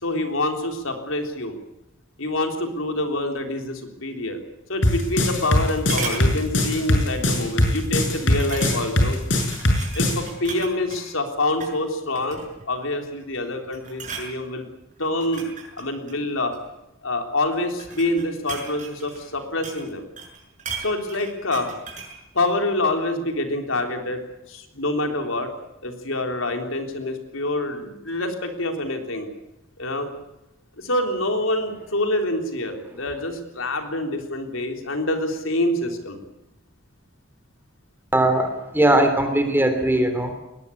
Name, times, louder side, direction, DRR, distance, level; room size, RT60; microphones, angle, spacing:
voice 1, 0.0-1.6 2.2-4.4 4.7-9.2 9.9-12.4 12.7-14.7 15.0-15.5 15.8-16.5 17.0-20.1 20.8-21.7 22.3-24.2 24.5-25.5 25.8-29.3 29.8-30.1 30.8-36.2, left 2 dB, 85° left, 5 dB, 3.8 m, -26 dB
sound 1, 4.7-5.6 5.9-6.3 6.8-7.0 7.4-7.5 8.4-9.0 9.4-11.0 11.5-11.8 12.1-12.7 13.2-13.5 13.7-14.3 15.0-16.7 17.5-19.9 20.2-22.2 22.5-22.6, right 4 dB, 40° right, 6.3 m, -36 dB
sound 2, 4.8-10.2, left 1 dB, 65° left, 6.6 m, -20 dB
voice 2, 38.1-40.3, right 1 dB, 10° right, 7 dB, 3.4 m, -19 dB
21.5 x 19.5 x 8.6 m, 0.94 s
head